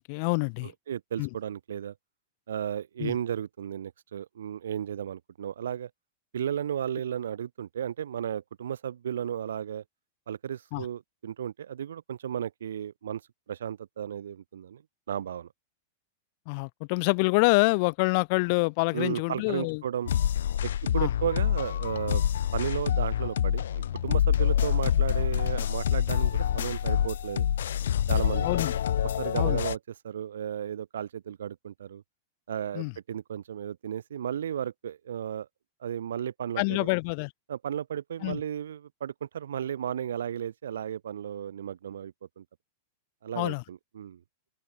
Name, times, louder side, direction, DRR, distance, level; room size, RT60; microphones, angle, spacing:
voice 1, 0.0-0.7 1.2-1.3 3.0-3.1 10.7-10.8 16.5-19.8 21.0-21.1 28.4-28.7 29.3-29.6 32.7-32.9 36.6-37.3 38.2-38.4 43.3-43.6, left 31 dB, 55° left, 1.5 m, -26 dB
voice 2, 0.6-1.9 2.5-5.9 6.3-9.8 10.3-13.2 13.5-14.8 15.1-15.5 18.9-20.1 20.6-22.2 22.5-27.5 28.1-28.5 29.0-29.8 30.0-32.0 32.5-35.5 35.8-36.9 37.5-42.4 43.2-44.2, right 9 dB, 75° right, 2.3 m, -34 dB
sound 1, 20.1-29.7, left 10 dB, 75° left, 0.4 m, -26 dB
open air
hypercardioid pair, 100°, 0 cm